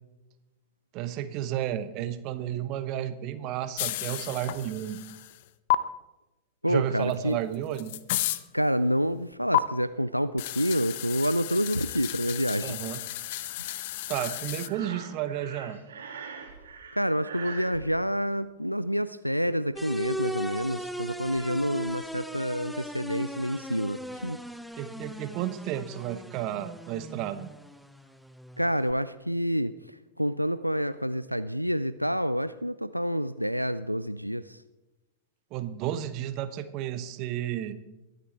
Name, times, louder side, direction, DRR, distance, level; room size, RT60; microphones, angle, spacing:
voice 1, 0.9-5.0 6.7-7.9 12.6-13.0 14.1-15.8 24.2-24.3 24.8-27.5 35.5-37.8, right 11 dB, 40° right, 12 dB, 1.0 m, -32 dB
sound 1, 3.8-5.4 5.7-5.8 7.1-7.2 7.5-8.4 9.5-9.6 10.4-14.7, left 16 dB, 50° left, 0.6 m, -32 dB
voice 2, 6.6-7.4 8.5-12.8 17.0-24.4 28.6-34.6, equal, 90° right, 13 dB, 0.4 m, -28 dB
Breathing, 14.1-17.8, right 5 dB, 65° right, 2.4 m, -42 dB
sound 2, 19.8-28.9, equal, ahead, 0.7 m, -39 dB
22.5 x 8.3 x 4.3 m, 1.0 s
figure-of-eight pair, 90°, 0 cm